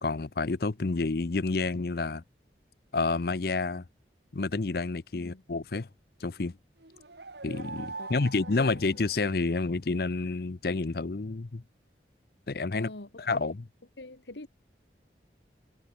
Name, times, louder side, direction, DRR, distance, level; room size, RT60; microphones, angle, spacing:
voice 1, 0.0-2.2 2.9-3.8 4.3-5.9 6.2-6.5 7.4-11.6 12.5-12.9 13.2-13.6, left 3 dB, 60° left, 0.7 m, -29 dB
sound 1, 6.8-9.7, right 3 dB, 75° right, 2.4 m, -43 dB
voice 2, 8.0-8.7 12.7-13.5 14.0-14.5, left 2 dB, 85° left, 2.0 m, -45 dB
head